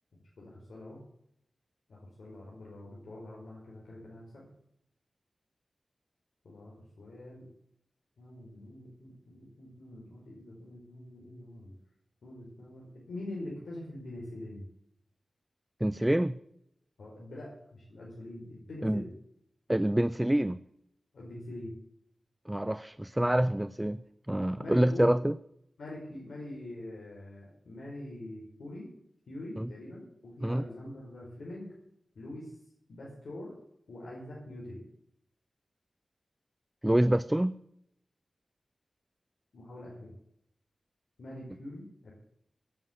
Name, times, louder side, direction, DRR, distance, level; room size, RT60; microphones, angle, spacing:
voice 1, 0.4-1.0 1.9-4.5 6.4-7.5 8.2-11.8 12.2-14.7 17.0-19.1 21.1-21.7 24.6-25.1 25.8-28.9 29.3-31.7 32.1-32.5 32.9-33.5 33.9-34.9 39.5-40.1 41.2-42.1, left 1 dB, 90° left, -4 dB, 4.9 m, -44 dB
voice 2, 15.8-16.4 18.8-19.0 19.7-20.6 22.5-24.0 24.3-25.3 29.6-29.7 30.4-30.6 36.8-37.6, right 1 dB, 10° right, 14 dB, 0.4 m, -26 dB
17.0 x 7.7 x 8.1 m, 0.77 s
wide cardioid pair, 110°, 0 cm